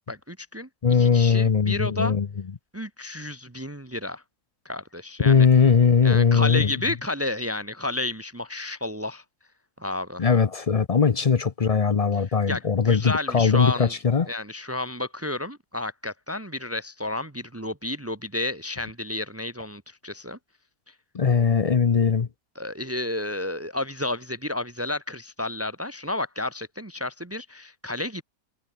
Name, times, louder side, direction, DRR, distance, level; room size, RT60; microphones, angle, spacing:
voice 1, 0.1-2.1 2.7-4.2 4.6-5.5 6.0-9.2 9.8-10.2 12.5-13.9 14.3-20.4 22.6-28.2, left 2 dB, 15° right, 0.5 m, -31 dB
voice 2, 0.8-2.3 5.2-6.7 10.2-14.3 21.1-22.3, left 6 dB, 45° left, 0.4 m, -20 dB
omnidirectional pair, 1.6 m